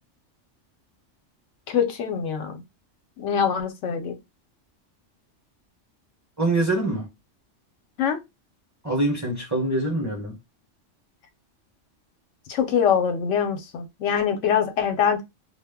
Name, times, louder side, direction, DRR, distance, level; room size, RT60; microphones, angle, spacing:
voice 1, 1.7-2.5 3.2-4.2 8.0-8.2 12.5-15.2, left 7 dB, 80° left, 0.9 m, -23 dB
voice 2, 6.4-7.1 8.8-10.4, right 2 dB, 15° right, 0.7 m, -24 dB
2.3 x 2.0 x 3.4 m
omnidirectional pair, 1.3 m